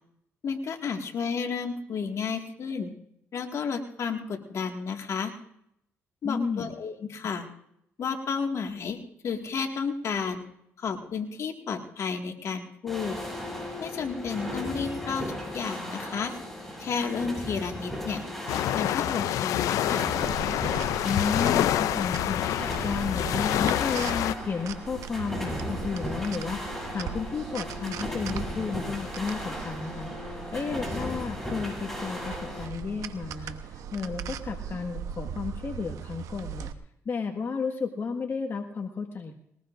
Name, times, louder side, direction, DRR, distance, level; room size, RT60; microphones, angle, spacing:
voice 1, 0.4-2.9 3.3-5.3 6.2-7.5 8.0-9.0 9.2-10.4 10.8-13.2 13.8-16.3 16.8-18.2 18.7-20.1, left 5 dB, 60° left, 3 dB, 2.0 m, -32 dB
voice 2, 6.2-6.7 21.0-36.7 37.0-39.3, left 5 dB, 45° left, 3 dB, 1.7 m, -33 dB
sound 1, 12.9-32.7, left 1 dB, 5° left, 7.7 m, -37 dB
sound 2, 18.5-24.3, left 13 dB, 85° left, 0.4 m, -27 dB
sound 3, 20.2-36.7, right 8 dB, 80° right, 1.0 m, -39 dB
21.5 x 19.0 x 2.6 m, 0.74 s
cardioid pair, 75°, 6 cm